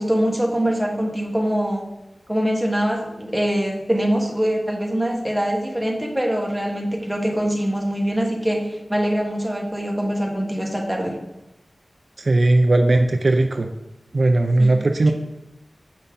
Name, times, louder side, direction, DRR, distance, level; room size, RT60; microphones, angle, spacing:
voice 1, 0.0-1.8 2.3-11.1 14.6-14.7, equal, ahead, -1 dB, 1.5 m, -23 dB
voice 2, 12.2-13.7 14.1-15.1, right 2 dB, 55° right, 5 dB, 0.5 m, -17 dB
7.1 x 5.5 x 3.8 m, 0.97 s
wide cardioid pair, 85°, 0 cm